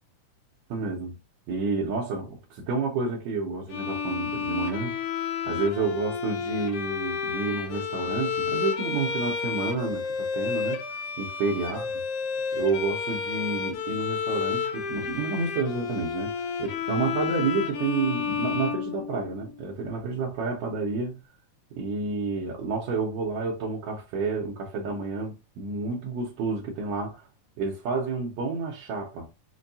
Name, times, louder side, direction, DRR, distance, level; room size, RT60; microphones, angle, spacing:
voice 1, 0.7-1.2 1.5-5.0 5.5-11.9 12.5-21.2 21.7-27.3 27.6-29.3, right 4 dB, 70° right, 1.9 m, -30 dB
Bowed string instrument, 3.7-19.6, left 6 dB, 75° left, 1.4 m, -31 dB
5.3 x 2.3 x 2.6 m
omnidirectional pair, 3.7 m